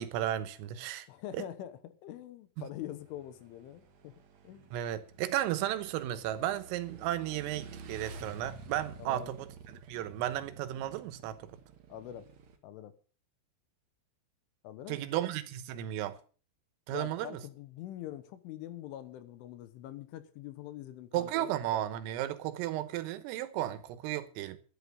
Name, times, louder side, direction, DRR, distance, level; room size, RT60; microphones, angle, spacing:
voice 1, 0.0-1.1 1.3-1.4 4.7-11.5 14.9-16.2 16.9-17.4 21.1-24.6, right 13 dB, 90° right, 3.7 m, -34 dB
voice 2, 1.1-4.2 4.5-4.7 9.0-9.3 11.9-12.3 12.6-12.9 14.6-15.3 16.9-21.5, left 12 dB, 75° left, 3.5 m, -44 dB
Motorcycle / Engine, 2.8-12.6, right 4 dB, 65° right, 1.7 m, -51 dB
12.0 x 10.5 x 6.7 m
omnidirectional pair, 5.8 m